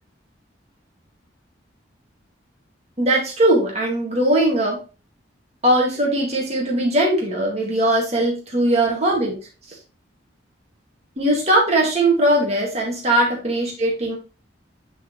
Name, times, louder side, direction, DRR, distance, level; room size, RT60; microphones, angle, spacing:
voice 1, 3.0-4.8 5.6-9.4 11.2-14.2, right 1 dB, 35° right, -1 dB, 1.9 m, -20 dB
9.0 x 4.1 x 3.0 m, 0.33 s
head